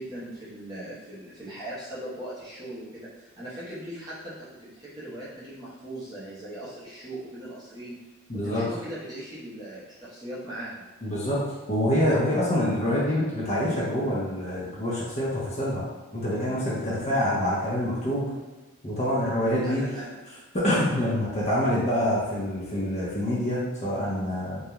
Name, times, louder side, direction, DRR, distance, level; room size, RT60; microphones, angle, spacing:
voice 1, 0.0-8.0 8.3-10.9 17.0-17.2 19.3-20.2, right 1 dB, 20° right, -10 dB, 0.7 m, -39 dB
voice 2, 8.3-8.6 11.0-11.4 11.7-15.8 16.1-18.3 18.8-19.8 20.5-24.6, left 1 dB, 30° left, -8 dB, 0.6 m, -26 dB
2.3 x 2.2 x 2.9 m, 1.2 s
head